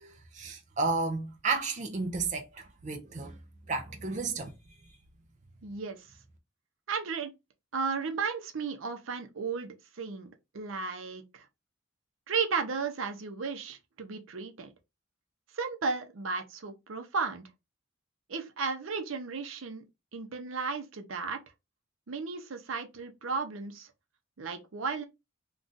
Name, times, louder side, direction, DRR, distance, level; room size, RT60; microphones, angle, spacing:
voice 1, 0.0-3.4 3.7-4.5, right 3 dB, 35° right, 0.4 m, -32 dB
voice 2, 5.6-6.2 6.9-7.3 7.7-11.5 12.3-14.7 15.5-17.5 18.3-19.9 20.1-21.4 22.1-23.9 24.4-25.0, right 5 dB, 75° right, 0.6 m, -34 dB
2.5 x 2.3 x 3.7 m
head